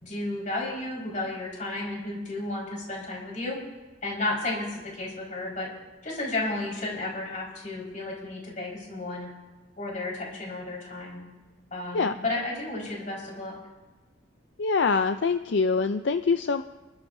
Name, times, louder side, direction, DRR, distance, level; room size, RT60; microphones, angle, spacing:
voice 1, 0.0-3.6 4.0-5.7 6.0-9.3 9.8-11.2 11.7-13.6, left 2 dB, 40° left, -3 dB, 4.8 m, -33 dB
voice 2, 14.6-16.6, left 4 dB, 70° left, 9 dB, 0.5 m, -24 dB
30.0 x 13.0 x 2.7 m, 1.2 s
head